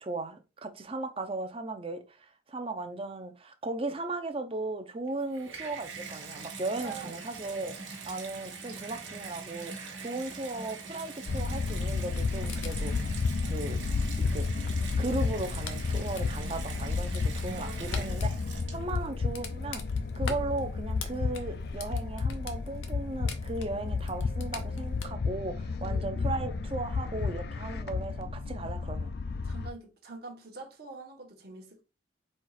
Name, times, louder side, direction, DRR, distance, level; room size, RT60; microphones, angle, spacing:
voice 1, 0.0-13.2 13.5-13.8 14.2-14.5 15.0-18.4 18.7-19.8 20.1-29.1, right 2 dB, 30° right, 0.6 m, -36 dB
Water tap faucet / Bathtub (filling or washing), 5.1-19.1 19.9-20.0, right 5 dB, 85° right, 1.2 m, -43 dB
voice 2, 6.8-7.2 17.5-18.2 25.8-26.1 29.4-31.8, right 3 dB, 55° right, 1.0 m, -45 dB
sound 1, 11.3-29.7, left 4 dB, 55° left, 0.4 m, -32 dB
sound 2, 11.9-25.1, left 5 dB, 90° left, 0.8 m, -46 dB
4.3 x 2.4 x 4.7 m
head